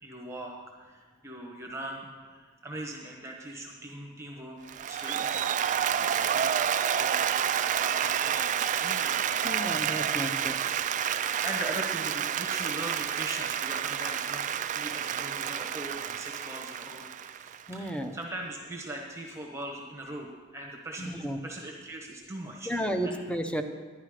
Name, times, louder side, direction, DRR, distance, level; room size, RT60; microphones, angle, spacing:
voice 1, 0.0-4.6 4.9-6.5 6.9-9.2 10.0-10.4 10.9-22.7 23.0-23.2, right 1 dB, 15° right, 0 dB, 1.0 m, -41 dB
Applause, 4.7-17.9, right 9 dB, 35° right, 0.3 m, -29 dB
voice 2, 9.4-10.6 17.7-18.1 21.0-21.4 22.6-23.6, equal, 5° left, 7 dB, 0.7 m, -32 dB
11.0 x 11.0 x 5.0 m, 1.5 s
head